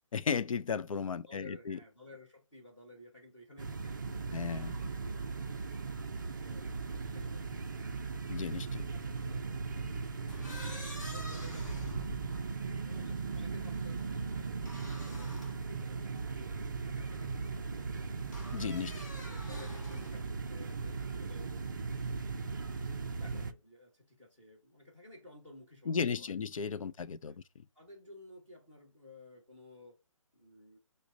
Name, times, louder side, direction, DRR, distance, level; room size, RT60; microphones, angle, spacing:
voice 1, 0.1-1.8 4.3-4.8 8.3-8.9 18.5-18.9 25.9-27.4, left 6 dB, 70° left, 0.4 m, -35 dB
voice 2, 1.2-6.0 6.3-7.6 8.9-10.8 11.1-18.3 18.5-19.0 19.3-21.6 23.1-26.4 26.8-27.0 27.2-27.4 27.7-30.0 30.3-30.8, left 1 dB, 15° left, 1.2 m, -55 dB
sound 1, 3.6-23.5, right 4 dB, 35° right, 0.4 m, -38 dB
sound 2, 10.3-13.1 14.7-15.6 16.3-16.4 18.3-20.2, equal, 30° left, 1.2 m, -47 dB
6.1 x 2.1 x 2.6 m
hypercardioid pair, 170°, 18 cm